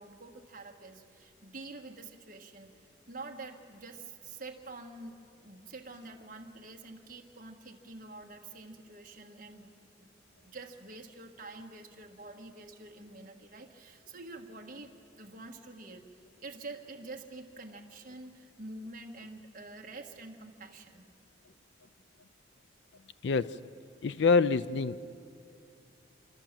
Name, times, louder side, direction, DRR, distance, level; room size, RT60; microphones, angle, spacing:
voice 1, 0.0-10.1 10.4-16.0 16.4-21.1, right 2 dB, 45° right, 2 dB, 1.6 m, -47 dB
voice 2, 23.2-23.6 24.0-25.0, left 4 dB, 60° left, 14 dB, 0.4 m, -26 dB
28.0 x 13.0 x 7.5 m, 2.5 s
head